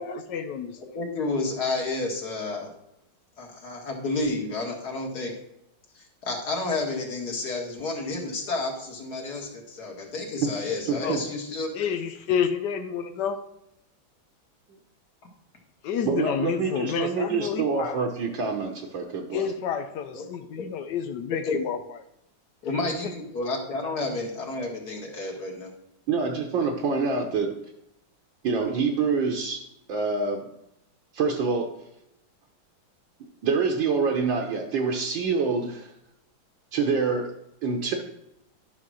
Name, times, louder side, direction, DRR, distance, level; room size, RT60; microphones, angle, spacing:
voice 1, 0.3-0.8 11.0-11.2 11.7-13.4 15.8-18.0 19.3-21.8, left 7 dB, 70° left, 10 dB, 1.1 m, -29 dB
voice 2, 0.9-2.7 3.4-5.3 6.0-11.9 20.1-20.2 20.6-20.7 21.5-21.6 22.6-25.7, left 3 dB, 50° left, 0 dB, 2.1 m, -30 dB
voice 3, 10.9-11.2 16.0-19.5 26.1-27.5 28.4-29.6 29.9-30.5 31.1-31.7 33.4-35.9 36.7-37.3 37.6-38.0, right 5 dB, 70° right, 1 dB, 1.7 m, -26 dB
11.5 x 4.0 x 6.2 m, 0.81 s
omnidirectional pair, 2.3 m